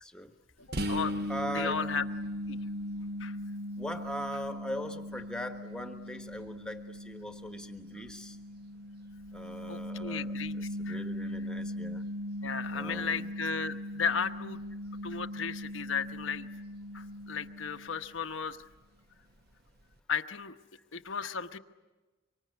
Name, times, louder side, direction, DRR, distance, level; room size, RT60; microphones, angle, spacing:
voice 1, 0.0-0.3 1.3-1.8 3.8-8.4 9.3-10.3 10.8-12.0 12.7-13.3, equal, 5° left, 6 dB, 1.3 m, -40 dB
voice 2, 0.6-1.2 1.5-2.0 2.5-2.6 3.2-3.4 9.7-11.0 12.4-14.6 15.0-16.5 16.9-18.6 20.1-20.5 20.9-21.6, left 6 dB, 75° left, 7 dB, 1.1 m, -35 dB
sound 1, 0.7-18.2, equal, 50° right, 1.2 m, -39 dB
25.5 x 24.5 x 9.6 m, 1.2 s
head